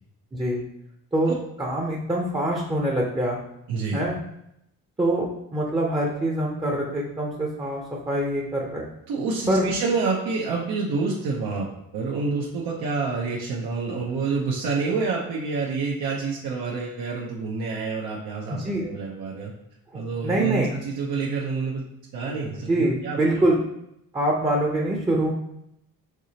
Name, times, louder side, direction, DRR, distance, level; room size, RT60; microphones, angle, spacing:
voice 1, 1.6-3.4 3.9-4.2 5.0-8.9 9.5-9.7 18.5-18.8 19.9-20.7 22.5-23.6 24.1-25.3, right 1 dB, 15° right, -2 dB, 0.6 m, -24 dB
voice 2, 3.7-4.0 9.1-11.7 11.9-19.5 19.9-21.9 22.1-23.4, right 4 dB, 85° right, -3 dB, 0.8 m, -28 dB
4.8 x 3.8 x 2.8 m, 0.79 s
cardioid pair, 135°, 36 cm